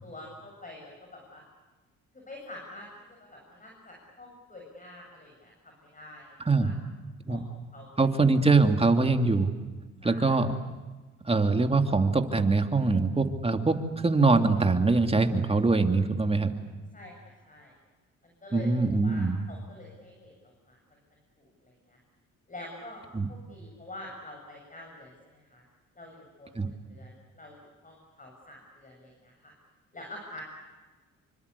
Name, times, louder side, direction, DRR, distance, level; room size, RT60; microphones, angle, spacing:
voice 1, 0.0-1.4 2.1-2.9 3.2-6.7 7.3-7.4 7.7-8.2 10.0-10.3 16.9-17.1 17.5-17.7 18.2-20.8 21.4-22.0 22.5-23.0 23.3-25.6 25.9-26.5 26.9-29.5 29.9-30.4, left 1 dB, 25° left, 0 dB, 7.8 m, -47 dB
voice 2, 8.0-9.5 10.0-10.5 11.2-16.5 18.5-19.4 23.1-23.3 26.5-26.7, right 3 dB, 20° right, 6 dB, 2.8 m, -23 dB
28.0 x 25.0 x 8.5 m, 1.2 s
cardioid pair, 90°, 30 cm